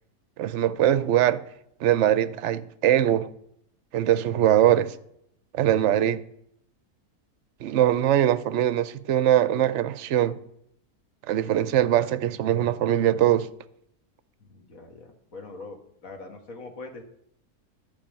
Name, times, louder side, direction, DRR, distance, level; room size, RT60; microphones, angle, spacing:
voice 1, 0.4-1.4 1.8-3.3 3.9-4.9 5.5-6.2 7.6-10.4 11.3-13.5, right 11 dB, 60° right, 0.8 m, -22 dB
voice 2, 14.4-17.0, left 3 dB, 60° left, 2.0 m, -42 dB
11.5 x 5.4 x 8.8 m
omnidirectional pair, 1.7 m